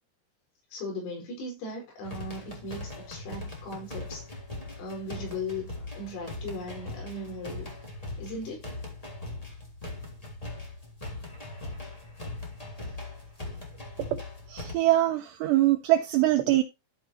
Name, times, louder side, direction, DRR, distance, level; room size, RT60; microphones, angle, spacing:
voice 1, 0.7-4.2 4.8-5.7 6.0-7.7 8.2-8.7, left 1 dB, 80° left, 7.2 m, -37 dB
sound 1, 2.0-14.7, left 2 dB, 15° left, 1.3 m, -40 dB
voice 2, 14.5-16.6, right 15 dB, 85° right, 2.4 m, -23 dB
14.5 x 5.7 x 2.8 m
omnidirectional pair, 6.0 m